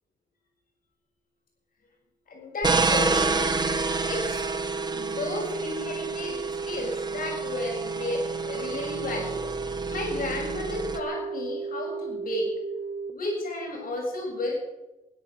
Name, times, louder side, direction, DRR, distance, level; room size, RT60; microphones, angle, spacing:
voice 1, 2.3-3.5 4.0-4.4 4.9-9.5 9.9-12.5 13.1-14.5, left 2 dB, 75° left, -2 dB, 7.3 m, -33 dB
sound 1, 2.6-11.0, right 3 dB, 30° right, 1.1 m, -29 dB
sound 2, 3.1-13.1, right 4 dB, 50° right, 1.1 m, -34 dB
13.5 x 11.0 x 8.8 m, 0.99 s
wide cardioid pair, 120°, 15 cm